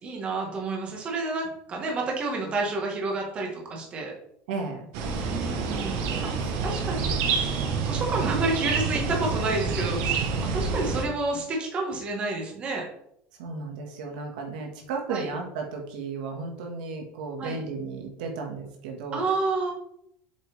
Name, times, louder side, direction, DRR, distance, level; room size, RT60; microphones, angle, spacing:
voice 1, 0.0-4.1 5.1-6.3 6.6-12.8 15.1-15.3 17.4-17.6 19.1-19.7, right 3 dB, 25° right, 0 dB, 1.6 m, -30 dB
voice 2, 4.5-4.8 6.1-6.9 13.4-19.2, right 4 dB, 90° right, 2 dB, 1.6 m, -34 dB
sound 1, 4.9-11.0, right 5 dB, 60° right, 1.2 m, -28 dB
7.4 x 5.3 x 3.4 m, 0.71 s
cardioid pair, 160°, 4 cm